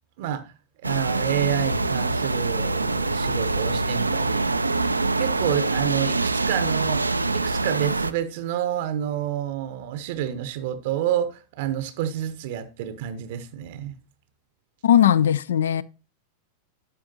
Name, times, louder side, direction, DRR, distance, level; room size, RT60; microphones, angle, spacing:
voice 1, 0.2-0.5 0.8-4.5 5.2-7.0 7.3-14.0, right 11 dB, 50° right, 0.7 m, -29 dB
sound 1, 0.8-8.1, right 3 dB, 80° right, 0.3 m, -24 dB
voice 2, 14.8-15.8, left 10 dB, 65° left, 0.3 m, -18 dB
12.0 x 5.1 x 2.6 m
figure-of-eight pair, 90°, 0 cm